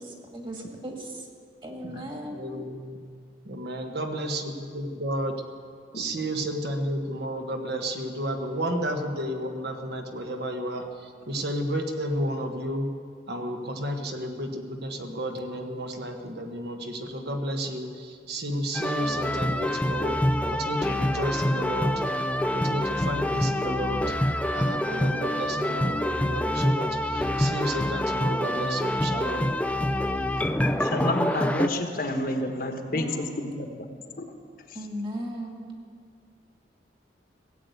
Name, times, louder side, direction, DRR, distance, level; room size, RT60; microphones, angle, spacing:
voice 1, 0.3-1.3 1.6-2.6 32.8-33.5 34.7-35.7, equal, 30° right, 1 dB, 2.0 m, -37 dB
voice 2, 2.2-3.2 3.5-5.4 5.9-12.9 13.3-22.0 22.5-24.2 24.5-29.5, right 1 dB, 60° right, 4 dB, 1.3 m, -32 dB
sound 1, 18.7-31.7, left 1 dB, 10° left, 0.4 m, -26 dB
voice 3, 30.8-33.1 33.4-33.7 34.2-34.3, left 1 dB, 55° left, 4 dB, 1.2 m, -29 dB
17.0 x 8.0 x 8.2 m, 2.1 s
head